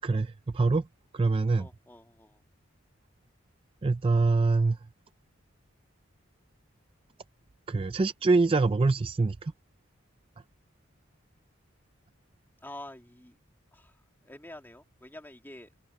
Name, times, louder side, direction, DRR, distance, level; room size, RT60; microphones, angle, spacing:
voice 1, 0.0-0.8 1.1-1.7 3.8-4.8 7.7-9.5, right 3 dB, 25° right, 0.4 m, -24 dB
voice 2, 1.6-2.4 12.6-13.3 13.7-14.0 14.2-15.7, left 1 dB, 10° left, 2.2 m, -47 dB
head